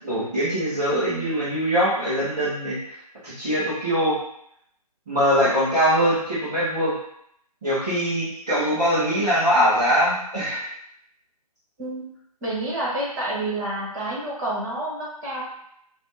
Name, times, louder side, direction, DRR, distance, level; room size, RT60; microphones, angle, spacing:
voice 1, 0.0-2.8 3.2-4.2 5.1-6.9 7.6-10.6, equal, 5° right, -16 dB, 0.4 m, -22 dB
voice 2, 11.8-12.1 12.4-15.4, right 1 dB, 25° right, -5 dB, 1.4 m, -29 dB
4.2 x 2.2 x 2.8 m, 0.73 s
figure-of-eight pair, 150°, 20 cm